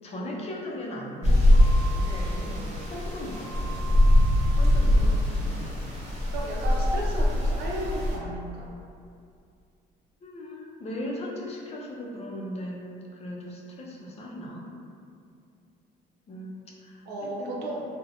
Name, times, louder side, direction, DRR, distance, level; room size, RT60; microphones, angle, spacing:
voice 1, 0.0-3.9 4.5-5.8 10.2-12.8 13.1-14.7 16.3-17.6, left 1 dB, 40° left, -3 dB, 0.5 m, -38 dB
sound 1, 1.2-8.1, left 1 dB, 40° right, 0.8 m, -22 dB
voice 2, 4.9-5.4 6.0-8.7 17.0-17.9, right 1 dB, 80° right, -3 dB, 0.5 m, -34 dB
2.7 x 2.1 x 2.6 m, 2.4 s
cardioid pair, 110°, 17 cm